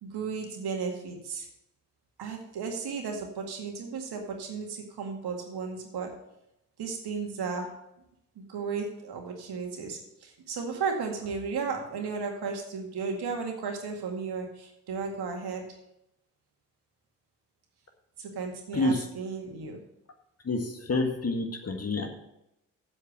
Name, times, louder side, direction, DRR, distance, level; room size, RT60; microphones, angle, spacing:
voice 1, 0.0-1.5 2.2-6.1 6.8-7.7 8.4-15.6 18.2-19.8, right 5 dB, 55° right, 2 dB, 2.1 m, -34 dB
voice 2, 20.9-22.1, left 2 dB, 30° left, 4 dB, 1.8 m, -27 dB
7.9 x 7.6 x 6.5 m, 0.83 s
figure-of-eight pair, 40°, 46 cm